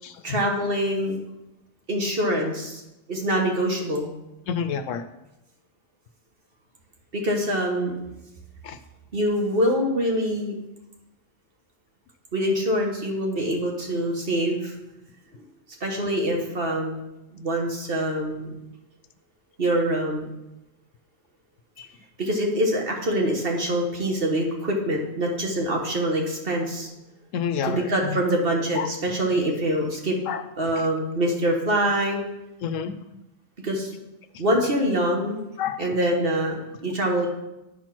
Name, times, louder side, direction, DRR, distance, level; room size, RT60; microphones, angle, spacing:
voice 1, 0.2-1.2 1.9-2.8 3.1-4.1 7.1-7.9 9.1-10.5 12.3-14.7 15.3-15.4 15.8-17.0 17.3-18.5 19.6-20.3 22.2-26.9 27.6-30.2 30.6-32.2 33.6-33.9 34.4-35.4 35.8-37.3, right 1 dB, 45° right, 0 dB, 1.5 m, -24 dB
voice 2, 4.5-5.0 8.6-8.8 21.8-21.9 27.3-28.2 28.8-28.9 30.3-30.4 32.6-32.9 35.6-35.8, left 7 dB, 75° left, 10 dB, 0.9 m, -28 dB
9.5 x 4.5 x 5.9 m, 0.95 s
omnidirectional pair, 1.4 m